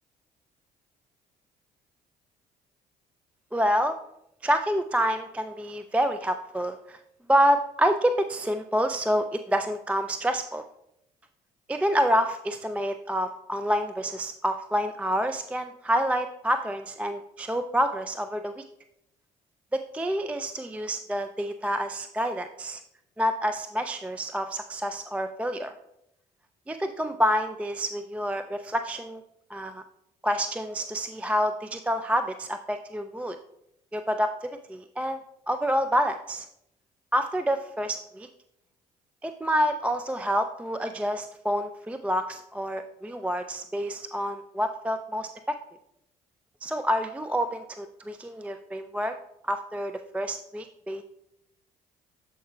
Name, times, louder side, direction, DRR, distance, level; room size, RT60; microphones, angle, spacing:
voice 1, 3.5-4.0 4.4-7.0 7.3-10.6 11.7-18.6 19.7-22.8 23.2-25.7 26.7-29.2 29.5-29.8 30.2-33.4 33.9-35.2 35.5-36.5 37.1-38.3 39.2-45.6 46.6-49.1 49.4-51.0, equal, 5° right, 8 dB, 0.3 m, -28 dB
12.5 x 4.4 x 2.3 m, 0.81 s
hypercardioid pair, 50°, 20 cm